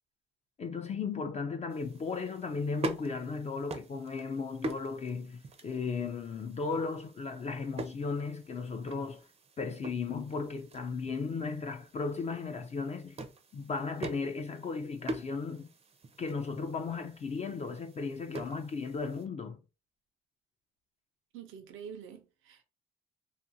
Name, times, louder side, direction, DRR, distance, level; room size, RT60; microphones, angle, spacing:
voice 1, 0.6-9.3 9.6-13.2 13.5-15.7 16.2-19.6, left 4 dB, 35° left, 0.4 m, -36 dB
sound 1, 1.7-19.3, right 2 dB, 30° right, 0.5 m, -45 dB
voice 2, 21.3-22.6, right 7 dB, 85° right, 0.6 m, -46 dB
2.7 x 2.5 x 2.6 m
cardioid pair, 90°, 20 cm